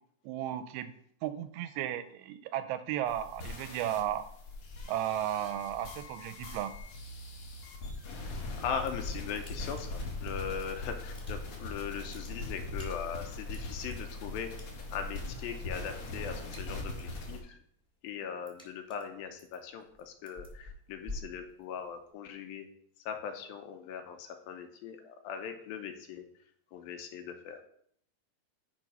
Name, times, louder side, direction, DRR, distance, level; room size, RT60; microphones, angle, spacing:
voice 1, 0.2-0.9 1.2-4.3 4.9-6.7, right 11 dB, 85° right, 11 dB, 2.5 m, -34 dB
sound 1, 3.1-17.4, left 2 dB, 50° left, 2.2 m, -41 dB
voice 2, 8.6-14.5 14.9-17.6 18.0-22.7 23.1-26.2 26.7-27.7, left 7 dB, 80° left, 6 dB, 2.4 m, -40 dB
sound 2, 8.8-9.1 9.3-10.7 11.0-11.6 11.9-13.9 14.6-15.2 15.5-15.8 16.1-17.2 17.6-22.1, left 2 dB, ahead, 1.7 m, -48 dB
11.0 x 3.9 x 5.4 m, 0.67 s
omnidirectional pair, 4.5 m